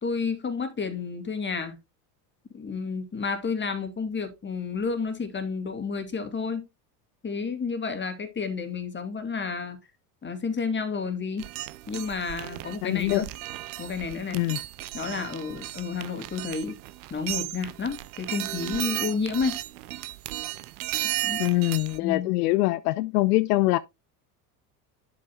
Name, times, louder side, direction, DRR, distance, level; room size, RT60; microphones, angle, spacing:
voice 1, 0.0-1.8 2.5-6.7 7.2-9.8 10.2-11.5 11.9-13.2 13.8-14.4 14.9-16.8 17.1-19.6 21.2-21.4 22.0-22.4, left 5 dB, 25° left, 2.3 m, -31 dB
sound 1, 11.4-22.0, right 17 dB, 70° right, 0.8 m, -35 dB
voice 2, 12.8-13.3 14.3-14.6 21.4-23.8, left 19 dB, 80° left, 0.6 m, -23 dB
10.5 x 7.8 x 2.2 m
hypercardioid pair, 80°, 46 cm